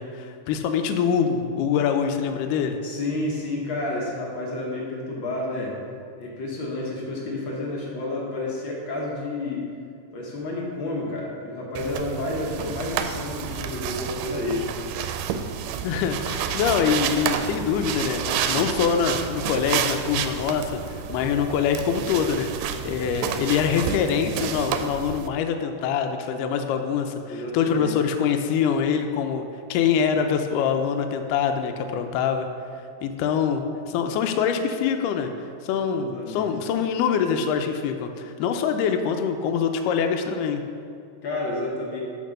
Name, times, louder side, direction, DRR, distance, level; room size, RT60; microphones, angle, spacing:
voice 1, 0.0-2.8 15.8-20.8 21.1-22.5 22.8-29.4 29.7-32.5 33.0-35.3 35.6-40.6, left 7 dB, 85° left, 6 dB, 2.1 m, -24 dB
voice 2, 2.8-5.8 6.2-9.7 10.1-14.7 27.3-27.9 35.9-36.5 41.2-42.0, left 2 dB, 60° left, -3 dB, 1.3 m, -30 dB
sound 1, 11.8-25.3, right 8 dB, 85° right, 2.1 m, -30 dB
6.6 x 6.0 x 6.4 m, 2.3 s
omnidirectional pair, 3.8 m